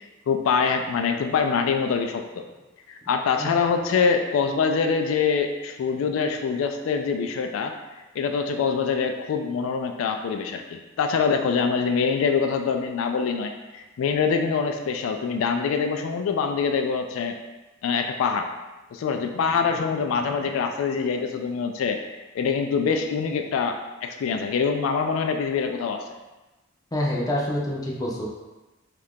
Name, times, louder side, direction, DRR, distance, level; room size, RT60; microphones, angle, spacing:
voice 1, 0.3-2.4 2.9-7.7 8.2-17.4 17.8-18.5 18.9-22.0 22.3-26.1, left 5 dB, 90° left, 5 dB, 0.3 m, -24 dB
voice 2, 26.9-28.3, left 1 dB, 20° left, -3 dB, 0.5 m, -26 dB
2.7 x 2.4 x 3.5 m, 1.1 s
head